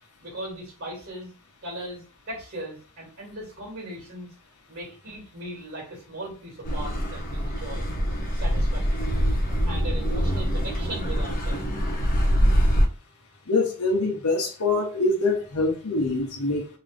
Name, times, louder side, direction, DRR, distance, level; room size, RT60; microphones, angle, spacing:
voice 1, 0.2-1.3 1.6-4.3 4.7-7.8 8.3-9.2 9.6-11.9, right 1 dB, 45° right, -2 dB, 2.3 m, -38 dB
Car passing by / Accelerating revving vroom, 6.7-12.9, equal, 40° left, 1.1 m, -24 dB
voice 2, 13.5-16.7, left 3 dB, 80° left, 1 dB, 1.1 m, -24 dB
3.9 x 3.0 x 3.5 m, 0.36 s
head